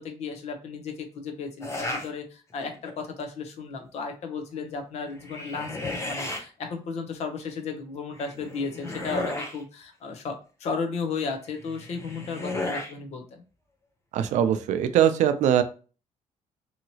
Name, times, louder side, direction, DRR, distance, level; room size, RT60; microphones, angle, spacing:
voice 1, 0.0-13.4, left 4 dB, 60° left, 4 dB, 0.7 m, -34 dB
sound 1, 1.6-2.1 2.6-3.1 5.1-6.4 8.1-9.6 11.6-12.9, left 2 dB, 20° left, 0.7 m, -34 dB
voice 2, 14.1-15.6, right 10 dB, 75° right, 10 dB, 0.4 m, -21 dB
2.9 x 2.8 x 2.8 m, 0.36 s
cardioid pair, 140°, 13 cm